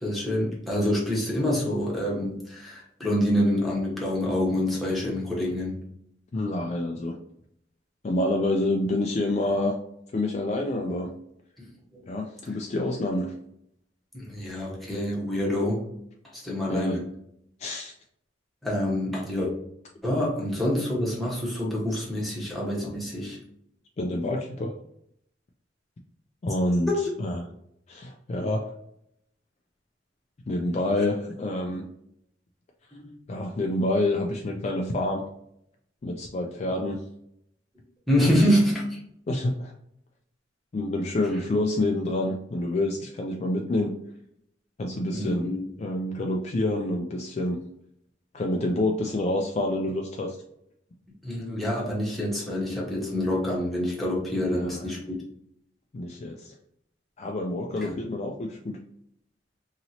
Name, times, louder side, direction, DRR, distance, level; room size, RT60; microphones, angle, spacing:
voice 1, 0.0-5.8 11.9-12.0 14.1-15.9 16.3-17.0 18.6-19.5 20.0-23.4 26.9-27.0 31.0-31.1 32.9-33.1 38.1-39.0 45.1-45.6 51.2-55.2 57.8-57.9, left 1 dB, ahead, -5 dB, 1.0 m, -26 dB
voice 2, 6.3-7.2 8.0-9.8 10.1-11.1 12.1-13.3 16.7-17.0 17.6-17.9 24.0-24.7 26.4-26.9 27.2-27.5 27.9-28.7 30.5-31.8 33.3-35.2 36.0-37.0 38.1-38.5 39.3-39.7 40.7-43.9 44.8-45.5 45.8-47.6 48.3-50.4 54.5-54.8 55.9-56.5 57.2-58.8, left 1 dB, 35° left, 2 dB, 0.3 m, -27 dB
2.9 x 2.8 x 2.8 m, 0.73 s
head